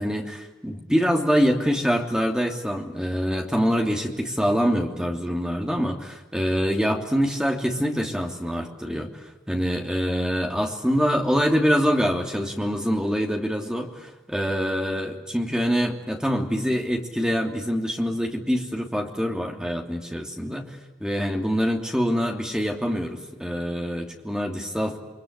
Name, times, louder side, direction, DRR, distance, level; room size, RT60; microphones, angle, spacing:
voice 1, 0.0-9.1 9.5-25.0, equal, 5° right, 2 dB, 2.9 m, -25 dB
29.5 x 23.0 x 8.2 m, 1.1 s
head